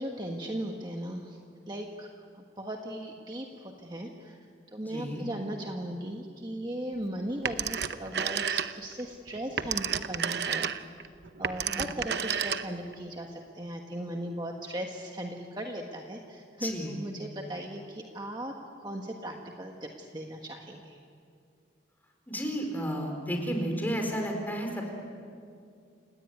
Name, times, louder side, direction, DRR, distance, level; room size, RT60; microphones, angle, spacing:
voice 1, 0.0-1.4 1.7-2.1 2.3-4.4 4.7-11.0 11.4-18.5 18.8-21.0, right 1 dB, 20° right, 2 dB, 1.4 m, -37 dB
voice 2, 4.9-5.3 11.6-11.9 16.6-17.0 22.3-24.9, equal, 10° left, 2 dB, 4.4 m, -32 dB
Telephone, 7.5-9.0 9.4-12.9, right 7 dB, 60° right, 0.8 m, -31 dB
29.0 x 18.0 x 9.5 m, 2.4 s
head